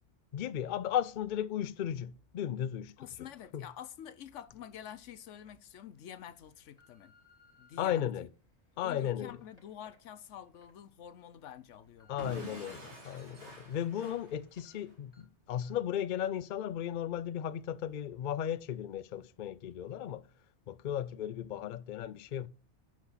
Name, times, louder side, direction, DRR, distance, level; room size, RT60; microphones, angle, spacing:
voice 1, 0.3-2.9 3.5-3.6 7.8-8.3 8.8-9.4 12.1-20.2 20.7-22.5, left 10 dB, 55° left, 0.6 m, -35 dB
voice 2, 3.0-7.1 7.6-8.3 8.8-12.4, left 10 dB, 85° left, 1.1 m, -48 dB
sound 1, 4.5-4.6 5.2-5.5 6.1-7.7 8.4-10.7 11.1-11.2 11.7-13.0 13.4-14.3 14.6-14.7 15.1-15.2 15.6-15.9 16.2-16.3, left 4 dB, 30° left, 3.0 m, -67 dB
Explosion / Shatter, 12.2-15.0, right 1 dB, 65° right, 3.0 m, -48 dB
8.8 x 6.0 x 5.7 m
omnidirectional pair, 1.2 m